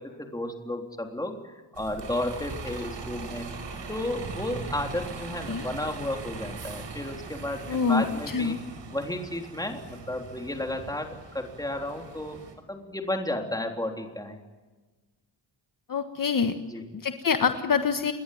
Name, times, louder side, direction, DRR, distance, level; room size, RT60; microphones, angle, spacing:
voice 1, 0.0-3.5 3.9-8.6 8.9-12.4 12.7-14.4 16.6-16.8, left 1 dB, 10° left, 3 dB, 3.6 m, -33 dB
Bus, 1.8-12.5, right 4 dB, 65° right, 6.1 m, -40 dB
voice 2, 7.7-8.0 8.3-8.6 15.9-16.5 16.9-18.1, left 5 dB, 45° left, 6 dB, 1.5 m, -25 dB
28.5 x 21.5 x 9.4 m, 1.3 s
wide cardioid pair, 175°, 46 cm